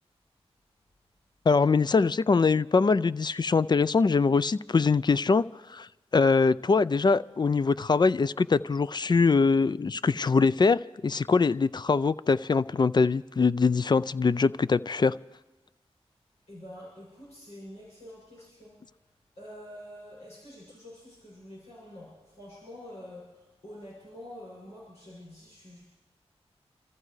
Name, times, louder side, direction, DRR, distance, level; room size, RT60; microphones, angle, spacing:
voice 1, 1.5-5.4 5.7-15.2, left 4 dB, 40° left, 0.4 m, -23 dB
voice 2, 16.5-18.8 19.3-25.8, left 1 dB, 90° left, 6.8 m, -47 dB
28.0 x 14.5 x 3.3 m
cardioid pair, 50°, 11 cm